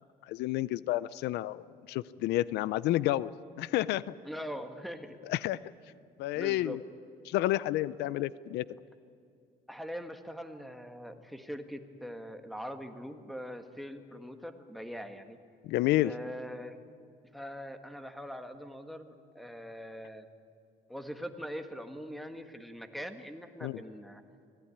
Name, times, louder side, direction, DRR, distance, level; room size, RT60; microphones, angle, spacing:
voice 1, 0.3-3.3 3.6-4.2 5.3-5.6 6.2-6.8 7.2-8.6 15.6-16.1 23.6-23.8, left 16 dB, 85° left, 18 dB, 0.5 m, -30 dB
voice 2, 4.2-5.2 6.3-6.8 9.7-15.4 16.0-16.8 17.3-20.3 20.9-24.2, equal, ahead, 7 dB, 1.7 m, -42 dB
24.0 x 16.5 x 9.9 m, 2.3 s
cardioid pair, 110°, 17 cm